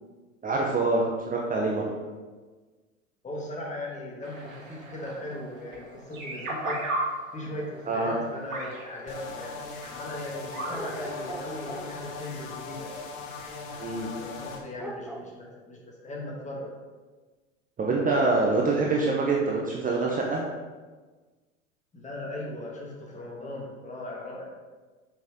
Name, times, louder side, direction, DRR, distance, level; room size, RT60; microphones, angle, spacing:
voice 1, 0.4-1.8 7.9-8.1 13.8-14.1 17.8-20.4, right 3 dB, 20° right, -2 dB, 1.0 m, -25 dB
voice 2, 3.2-6.8 7.3-9.6 9.9-12.9 14.2-16.7 21.9-24.4, left 1 dB, 20° left, -3 dB, 2.0 m, -38 dB
sound 1, 4.2-11.4, right 1 dB, 80° right, 2.3 m, -37 dB
sound 2, 9.1-14.6, left 4 dB, 50° left, 1.4 m, -39 dB
sound 3, 10.7-12.0 14.8-15.4, right 2 dB, ahead, 0.5 m, -40 dB
6.9 x 5.8 x 3.7 m, 1.3 s
hypercardioid pair, 90°, 40 cm